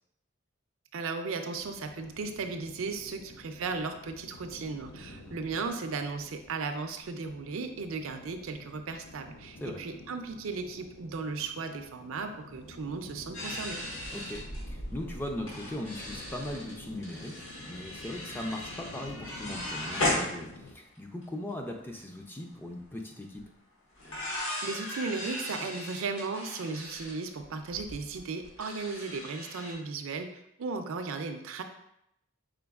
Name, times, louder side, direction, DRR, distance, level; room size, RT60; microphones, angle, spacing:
voice 1, 0.9-13.8 24.6-30.3 30.6-31.6, right 4 dB, 70° right, 6 dB, 0.4 m, -36 dB
sound 1, 1.5-20.7, left 2 dB, 90° left, 0.6 m, -50 dB
sound 2, 13.3-21.0 21.2-21.3 21.5-21.9 23.3-23.4 24.0-29.7, left 1 dB, 65° left, 1.5 m, -37 dB
voice 2, 14.1-23.4, left 1 dB, 10° left, 2 dB, 0.3 m, -39 dB
5.1 x 3.7 x 2.3 m, 0.80 s
head